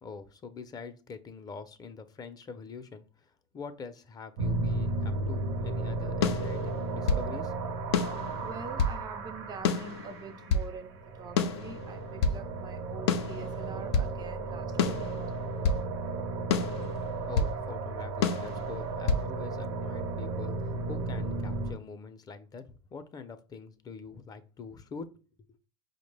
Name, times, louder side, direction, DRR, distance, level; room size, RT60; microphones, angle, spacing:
voice 1, 0.0-7.5 17.3-20.6 20.9-25.2, left 5 dB, 30° left, 0.5 m, -44 dB
sound 1, 4.4-21.7, right 2 dB, 80° right, 0.7 m, -34 dB
sound 2, 6.2-7.3 7.9-9.0 9.6-10.7 11.4-12.4 13.1-14.1 14.8-15.8 16.5-17.6 18.2-19.3, left 5 dB, 80° left, 0.4 m, -29 dB
voice 2, 8.4-15.2, right 5 dB, 30° right, 0.4 m, -45 dB
4.9 x 2.1 x 3.3 m
hypercardioid pair, 95°, 13 cm